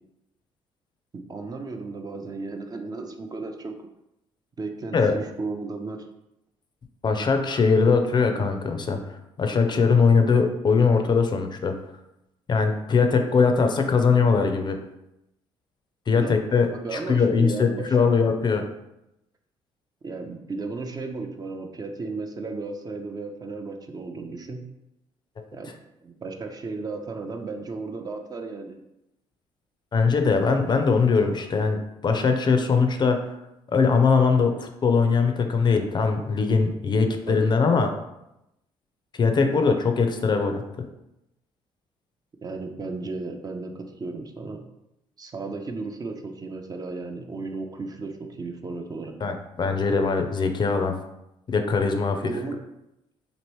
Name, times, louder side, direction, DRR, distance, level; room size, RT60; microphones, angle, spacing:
voice 1, 1.1-3.8 4.6-6.1 16.2-16.3 16.7-18.1 20.0-24.7 25.5-25.7 26.0-28.8 37.3-37.5 42.4-44.7 45.2-49.1 52.2-52.6, right 3 dB, 30° right, 4 dB, 0.5 m, -34 dB
voice 2, 7.0-11.7 12.5-14.8 16.1-18.6 29.9-31.8 32.0-33.2 33.7-37.9 39.2-40.6 49.2-50.9 51.5-52.2, left 5 dB, 40° left, 5 dB, 0.4 m, -21 dB
3.0 x 2.6 x 3.0 m, 0.87 s
supercardioid pair, 70°, 12 cm